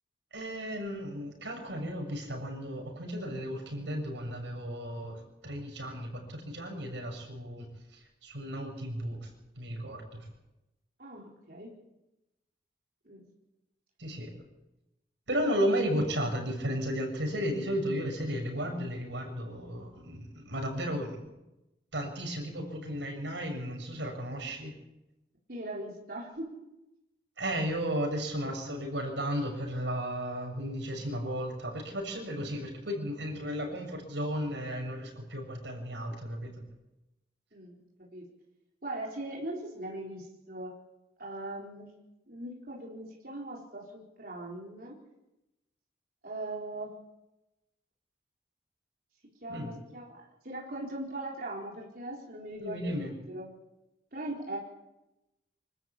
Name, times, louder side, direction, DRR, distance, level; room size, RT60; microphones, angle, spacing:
voice 1, 0.3-7.7 7.9-9.3 9.5-10.3 14.0-14.3 15.3-21.2 21.9-24.7 27.4-36.6 49.5-49.7 52.6-53.1, equal, 90° right, 3 dB, 6.8 m, -34 dB
voice 2, 11.0-11.7 13.0-13.3 25.5-26.6 37.5-37.8 38.1-38.2 38.8-40.7 41.2-41.9 42.3-45.0 46.2-46.9 49.4-52.9 53.3-53.5 54.1-54.6, right 1 dB, 55° right, -3 dB, 4.4 m, -40 dB
25.5 x 13.5 x 8.7 m, 0.94 s
head